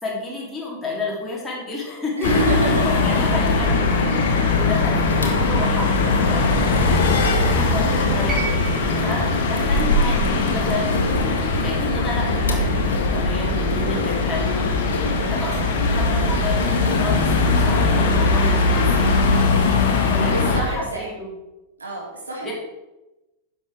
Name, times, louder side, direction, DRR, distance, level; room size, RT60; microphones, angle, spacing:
voice 1, 0.0-2.3 2.6-4.1 4.4-6.5 6.8-10.9 11.3-15.0 15.3-18.9 20.0-21.3 22.4-22.5, left 2 dB, 10° left, -5 dB, 3.3 m, -31 dB
sound 1, 2.2-20.6, left 3 dB, 55° left, 1.6 m, -20 dB
voice 2, 2.2-3.0 11.4-11.7 19.2-19.5 20.3-21.1 21.8-22.5, right 1 dB, 75° right, -4 dB, 3.9 m, -27 dB
sound 2, 2.9-18.5, left 3 dB, 70° left, 1.4 m, -30 dB
sound 3, 8.3-12.5 13.6-13.7, right 4 dB, 15° right, 2.9 m, -36 dB
10.5 x 6.7 x 4.8 m, 1.0 s
figure-of-eight pair, 90°, 0 cm